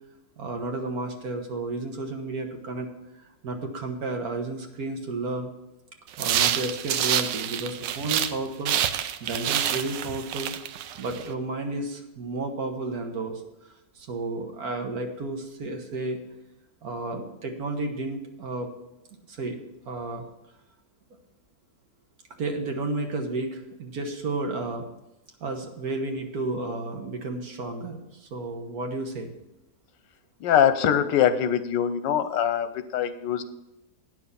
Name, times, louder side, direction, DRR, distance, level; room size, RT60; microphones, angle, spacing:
voice 1, 0.4-2.9 3.1-5.5 6.2-8.7 9.2-10.5 11.0-13.4 13.9-16.2 16.8-18.7 19.3-19.6 19.9-20.3 22.4-24.9 25.4-29.3, right 2 dB, 60° right, 4 dB, 1.6 m, -32 dB
sound 1, 6.1-8.4 8.6-11.2, right 10 dB, 85° right, 1.2 m, -27 dB
voice 2, 30.4-33.4, left 9 dB, 85° left, 11 dB, 1.4 m, -23 dB
9.0 x 6.1 x 7.0 m, 0.92 s
omnidirectional pair, 1.9 m